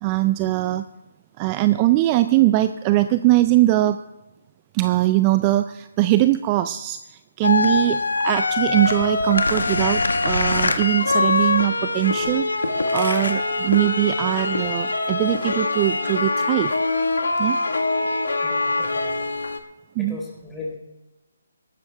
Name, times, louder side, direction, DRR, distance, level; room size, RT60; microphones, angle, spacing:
voice 1, 0.0-0.8 1.4-4.0 4.7-12.5 12.9-16.7 17.4-17.6 20.0-20.2, right 15 dB, 25° right, 12 dB, 0.4 m, -21 dB
sound 1, 7.4-19.6, left 3 dB, 75° left, 1.5 m, -23 dB
voice 2, 18.4-19.3 20.0-20.8, left 3 dB, 5° left, -3 dB, 3.7 m, -37 dB
18.5 x 13.0 x 3.4 m, 1.0 s
figure-of-eight pair, 150°, 0 cm